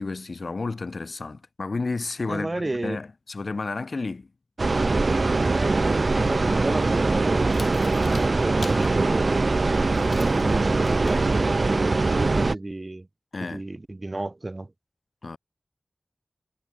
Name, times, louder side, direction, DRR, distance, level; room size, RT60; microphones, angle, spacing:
voice 1, 0.0-4.3 13.3-13.6 15.2-15.4, left 3 dB, 75° left, 1.2 m, -31 dB
voice 2, 2.3-3.0 5.5-9.5 10.0-13.1 13.4-14.7, right 2 dB, 40° right, 2.1 m, -32 dB
sound 1, 4.6-12.5, right 3 dB, 65° right, 0.3 m, -22 dB
sound 2, 6.6-12.2, left 3 dB, 60° left, 2.1 m, -45 dB
wide cardioid pair, 75°, 0 cm